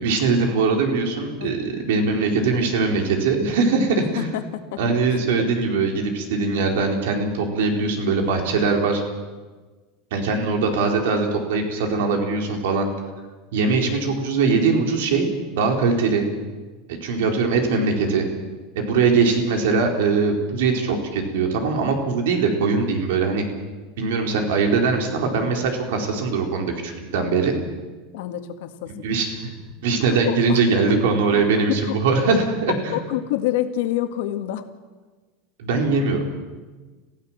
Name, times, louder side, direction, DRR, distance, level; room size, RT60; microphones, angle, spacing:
voice 1, 0.0-4.3 4.8-9.0 10.1-12.9 13.5-15.3 15.5-16.3 16.9-18.2 18.7-23.4 24.0-27.5 29.0-29.5 29.8-33.0 35.6-36.3, right 4 dB, 80° right, 3 dB, 4.4 m, -21 dB
voice 2, 4.1-4.8 5.3-5.5 28.1-28.9 30.2-30.6 31.3-32.0 32.9-34.6, left 13 dB, 70° left, 7 dB, 2.0 m, -27 dB
29.5 x 16.0 x 7.5 m, 1.3 s
supercardioid pair, 175°, 0 cm